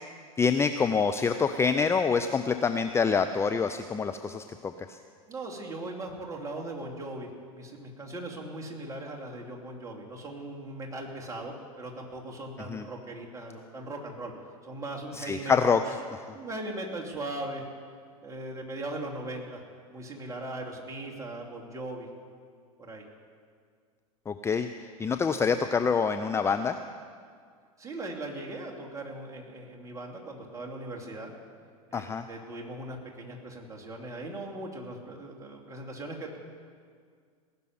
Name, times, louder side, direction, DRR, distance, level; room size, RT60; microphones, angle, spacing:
voice 1, 0.4-5.0 12.7-12.8 15.1-15.8 16.3-16.4 24.3-24.7 25.0-26.8 31.9-32.2, left 5 dB, 15° left, 8 dB, 0.5 m, -26 dB
voice 2, 5.3-14.3 14.6-15.8 16.3-17.6 18.2-19.6 19.9-22.1 22.8-23.0 27.8-31.3 31.9-36.4, right 2 dB, 15° right, -1 dB, 2.8 m, -39 dB
18.5 x 6.9 x 9.4 m, 2.1 s
figure-of-eight pair, 85°, 19 cm